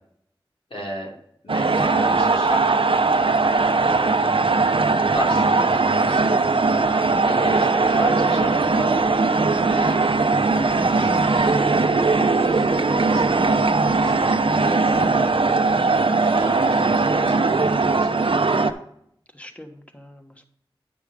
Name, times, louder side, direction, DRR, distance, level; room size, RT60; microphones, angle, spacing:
voice 1, 0.7-1.1 1.4-2.8 3.8-4.2 5.0-11.7 12.4-13.3 14.0-15.2 16.3-18.4, equal, 90° left, -3 dB, 3.2 m, -35 dB
sound 1, 1.5-18.7, right 3 dB, 70° right, 0.7 m, -19 dB
voice 2, 14.2-14.7 15.4-15.9 19.3-20.5, equal, 15° left, 5 dB, 1.4 m, -45 dB
9.5 x 5.9 x 5.0 m, 0.69 s
wide cardioid pair, 40°, 9 cm